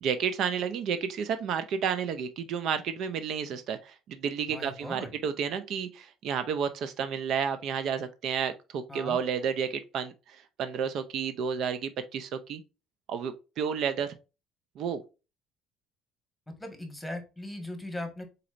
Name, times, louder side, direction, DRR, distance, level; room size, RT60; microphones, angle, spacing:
voice 1, 0.0-12.6 13.1-14.1 14.8-15.0, right 7 dB, 65° right, 0.4 m, -31 dB
voice 2, 4.5-5.1 8.9-9.2 16.5-18.2, left 1 dB, 5° left, 1.5 m, -39 dB
4.1 x 3.9 x 2.5 m
supercardioid pair, 90°, 0 cm